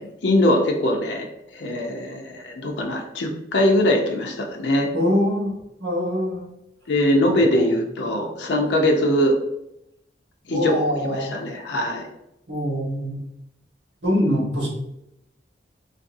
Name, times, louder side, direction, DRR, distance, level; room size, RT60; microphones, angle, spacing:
voice 1, 0.0-4.9 6.9-9.3 10.5-12.1, left 1 dB, 90° left, 1 dB, 0.6 m, -22 dB
voice 2, 4.9-5.5 5.8-6.5 7.3-7.7 10.5-11.4 12.5-13.2 14.0-14.7, equal, 70° right, -3 dB, 1.3 m, -24 dB
3.9 x 2.6 x 2.6 m, 0.84 s
head